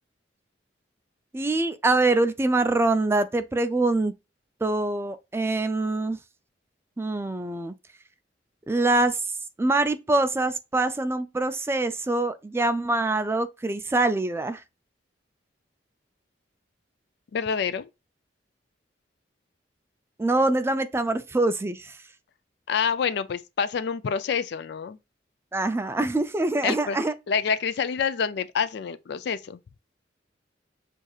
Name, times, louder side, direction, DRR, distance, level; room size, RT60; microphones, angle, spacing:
voice 1, 1.3-4.1 4.6-6.2 7.0-7.7 8.7-9.2 9.6-14.6 20.2-22.0 25.5-27.1, right 2 dB, 15° right, 0.3 m, -24 dB
voice 2, 17.3-17.9 22.7-25.0 26.6-27.0 27.3-29.6, left 6 dB, 65° left, 0.4 m, -27 dB
6.3 x 2.7 x 2.3 m
head